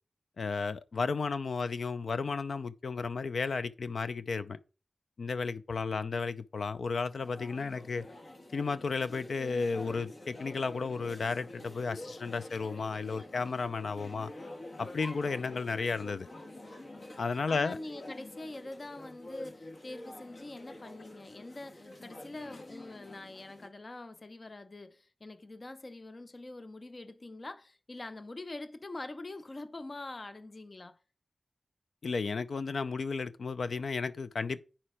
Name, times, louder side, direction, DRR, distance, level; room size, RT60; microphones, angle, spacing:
voice 1, 0.4-4.6 5.2-8.0 8.5-14.3 14.8-16.3 17.2-17.8 32.0-34.6, left 4 dB, 85° left, 0.5 m, -33 dB
sound 1, 7.2-23.7, left 1 dB, 70° left, 1.8 m, -48 dB
voice 2, 17.5-31.0, left 2 dB, 50° left, 0.7 m, -44 dB
10.0 x 4.4 x 4.8 m
cardioid pair, 45°, 0 cm